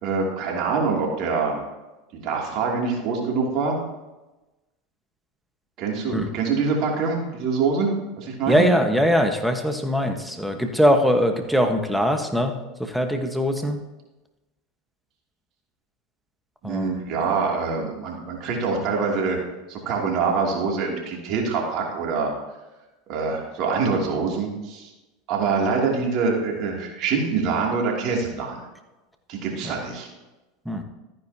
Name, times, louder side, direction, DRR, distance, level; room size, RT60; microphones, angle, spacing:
voice 1, 0.0-1.6 2.1-3.8 5.8-7.9 8.2-8.7 16.6-19.4 19.7-22.3 23.1-24.9 25.3-28.7 29.3-30.1, right 4 dB, 55° right, -1 dB, 2.8 m, -25 dB
voice 2, 8.5-13.8 16.6-16.9 29.6-29.7 30.6-30.8, equal, ahead, 5 dB, 1.3 m, -22 dB
13.5 x 9.7 x 2.9 m, 1.1 s
hypercardioid pair, 90°, 0 cm